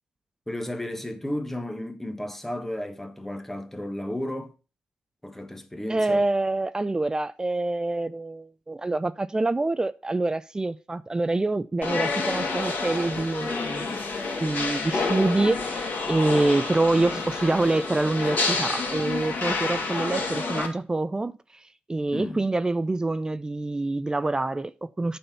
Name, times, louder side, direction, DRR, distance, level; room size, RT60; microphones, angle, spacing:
voice 1, 0.5-4.5 5.2-6.2 22.1-22.4, left 1 dB, 10° left, 1.3 m, -33 dB
voice 2, 5.9-14.0 14.4-21.3 21.9-25.2, right 2 dB, 20° right, 0.5 m, -26 dB
sound 1, 11.8-20.7, left 3 dB, 55° left, 2.9 m, -29 dB
8.7 x 4.3 x 7.0 m
cardioid pair, 80°, 4 cm